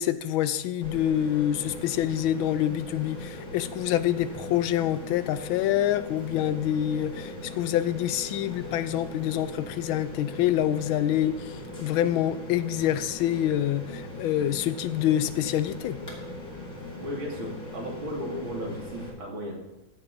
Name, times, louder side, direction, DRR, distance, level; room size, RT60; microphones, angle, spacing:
voice 1, 0.0-16.0, left 11 dB, 90° left, 13 dB, 1.4 m, -26 dB
sound 1, 0.8-19.1, left 1 dB, 40° left, 2.5 m, -40 dB
voice 2, 17.0-19.6, equal, 80° right, -2 dB, 3.2 m, -35 dB
14.5 x 9.9 x 2.7 m, 1.1 s
omnidirectional pair, 2.2 m